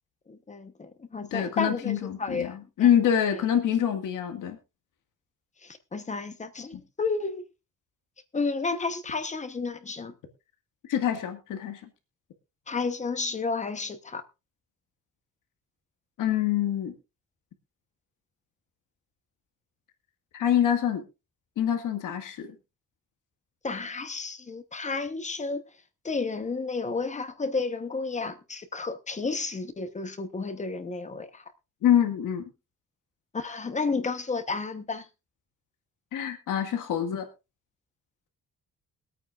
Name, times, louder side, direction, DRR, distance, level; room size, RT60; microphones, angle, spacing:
voice 1, 0.3-2.9 5.6-7.4 8.3-10.1 12.7-14.2 23.6-25.6 26.0-31.4 33.3-35.1, left 4 dB, 25° left, 1.0 m, -32 dB
voice 2, 1.2-4.6 6.7-6.8 10.9-11.8 16.2-17.0 20.3-21.0 21.6-22.6 31.8-32.4 36.1-37.3, left 10 dB, 85° left, 1.9 m, -25 dB
22.5 x 9.0 x 2.5 m
cardioid pair, 155°, 31 cm